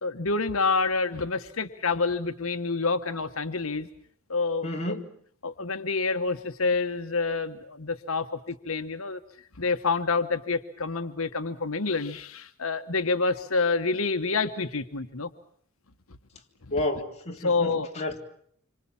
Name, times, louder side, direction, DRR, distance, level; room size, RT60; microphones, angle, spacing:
voice 1, 0.0-3.9 4.3-5.0 5.4-9.2 9.6-15.3 17.4-17.9, left 4 dB, 80° left, 8 dB, 1.4 m, -28 dB
voice 2, 4.6-5.1 16.7-18.2, left 1 dB, 30° left, 1 dB, 3.3 m, -31 dB
27.0 x 26.0 x 7.3 m, 0.63 s
head